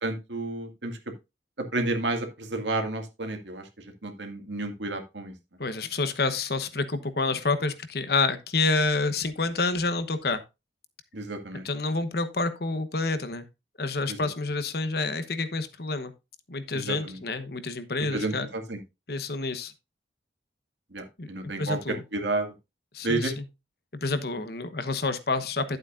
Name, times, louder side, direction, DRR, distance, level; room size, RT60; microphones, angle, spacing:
voice 1, 0.0-1.0 1.7-3.6 4.0-5.3 11.1-11.6 16.9-17.0 18.1-18.8 20.9-21.8 22.1-22.5 23.0-23.3, right 2 dB, 85° right, 2.1 m, -30 dB
voice 2, 5.6-10.4 11.5-13.5 13.8-16.1 16.5-18.5 19.1-19.7 21.2-21.3 21.6-22.0 22.9-23.5 23.9-25.8, left 3 dB, 60° left, 1.1 m, -28 dB
12.0 x 7.9 x 2.6 m
head